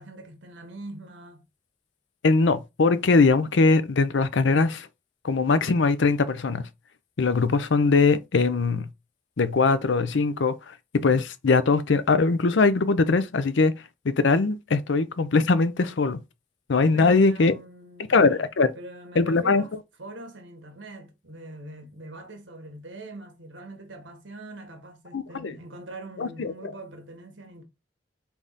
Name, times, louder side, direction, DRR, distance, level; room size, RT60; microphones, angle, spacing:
voice 1, 0.0-1.5 16.9-18.5 18.7-19.7 20.0-27.6, right 2 dB, 75° right, 1.3 m, -42 dB
voice 2, 2.2-4.9 5.2-6.7 7.2-8.9 9.4-13.7 14.0-16.2 16.7-17.5 18.1-18.7 19.2-19.6 25.1-25.5 26.2-26.7, left 4 dB, 70° left, 0.5 m, -21 dB
3.8 x 3.5 x 3.9 m
head